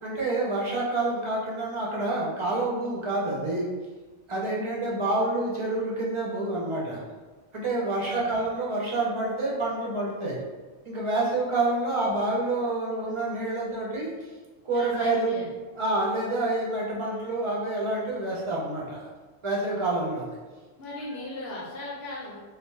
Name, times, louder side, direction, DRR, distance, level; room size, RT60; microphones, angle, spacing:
voice 1, 0.0-3.7 4.3-7.0 7.5-10.4 10.9-14.1 14.6-15.3 15.7-19.1 19.4-20.4, right 2 dB, 40° right, -5 dB, 0.5 m, -28 dB
voice 2, 7.8-8.3 14.7-15.5 20.8-22.4, left 2 dB, 70° left, -5 dB, 1.0 m, -38 dB
2.4 x 2.2 x 3.1 m, 1.3 s
omnidirectional pair, 1.1 m